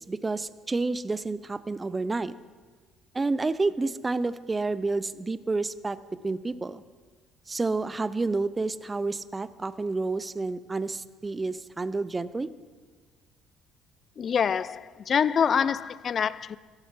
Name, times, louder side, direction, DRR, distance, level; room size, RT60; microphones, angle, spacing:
voice 1, 0.0-2.3 3.1-6.0 6.2-6.8 7.5-12.5, right 3 dB, 25° right, 16 dB, 0.5 m, -29 dB
voice 2, 14.2-16.6, left 7 dB, 45° left, 18 dB, 0.4 m, -25 dB
13.0 x 11.5 x 4.6 m, 1.5 s
supercardioid pair, 75°, 0 cm